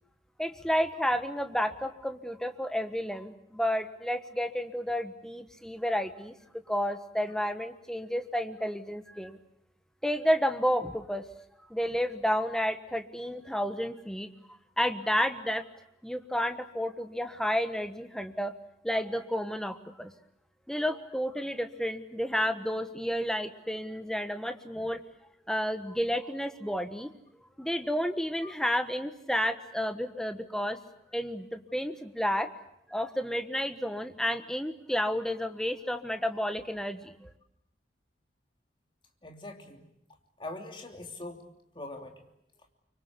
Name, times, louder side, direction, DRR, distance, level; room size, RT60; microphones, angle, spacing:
voice 1, 0.4-6.3 6.7-9.4 10.0-11.3 11.7-14.3 14.8-15.6 16.0-18.5 18.8-20.1 20.7-25.0 25.5-27.1 27.6-30.8 31.1-32.5 32.9-37.3, equal, 5° left, 8 dB, 1.3 m, -31 dB
voice 2, 39.2-39.8 40.4-41.4 41.7-42.1, left 2 dB, 25° left, 3 dB, 3.1 m, -42 dB
25.0 x 24.5 x 8.4 m, 0.76 s
head